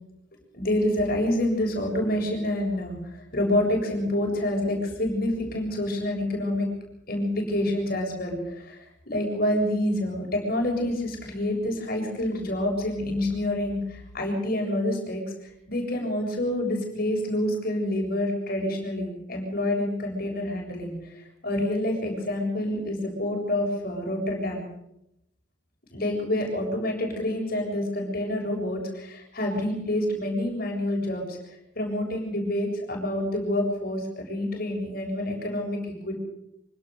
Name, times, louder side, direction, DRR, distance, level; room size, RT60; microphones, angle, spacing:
voice 1, 0.5-6.7 7.1-24.7 25.9-31.4 31.8-35.8 36.0-36.1, left 1 dB, 50° left, 1 dB, 7.3 m, -27 dB
26.0 x 17.5 x 6.7 m, 0.82 s
head